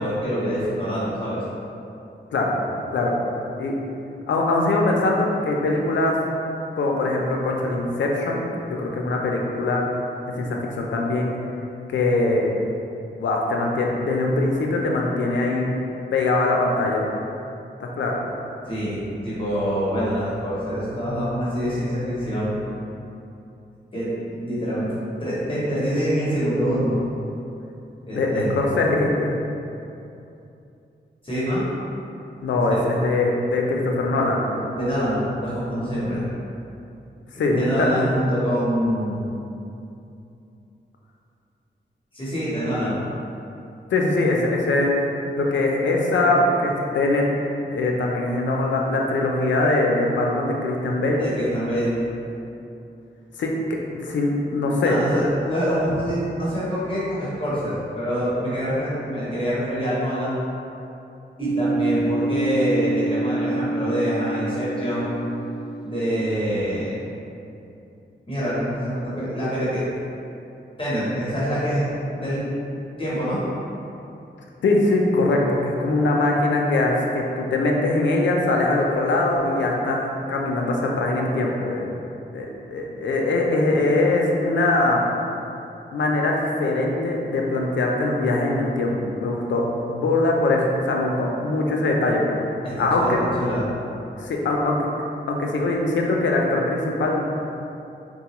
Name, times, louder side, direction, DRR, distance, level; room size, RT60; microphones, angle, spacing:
voice 1, 0.0-1.4 18.7-22.6 23.9-27.0 28.1-28.6 31.2-31.6 32.7-32.8 34.7-36.2 37.3-39.2 42.1-43.0 51.2-52.0 54.8-60.4 61.4-65.2 65.8-66.9 68.3-69.8 70.8-71.9 72.1-72.5 73.0-73.4 92.6-93.6, equal, 30° left, -10 dB, 0.8 m, -25 dB
voice 2, 4.3-6.1 6.8-8.4 8.7-9.8 10.3-11.3 11.9-12.5 13.2-15.7 16.1-17.0 17.8-18.2 28.1-29.3 32.4-34.5 37.4-37.9 43.9-45.1 45.4-47.2 47.7-51.2 53.4-53.5 53.9-55.0 74.6-81.9 82.3-85.0 85.9-92.3 92.8-93.2 94.2-94.9 95.3-97.2, left 2 dB, 85° left, 0 dB, 0.4 m, -22 dB
sound 1, 61.4-66.9, right 2 dB, 65° right, 0.5 m, -27 dB
3.8 x 2.3 x 2.9 m, 2.8 s
wide cardioid pair, 170°, 19 cm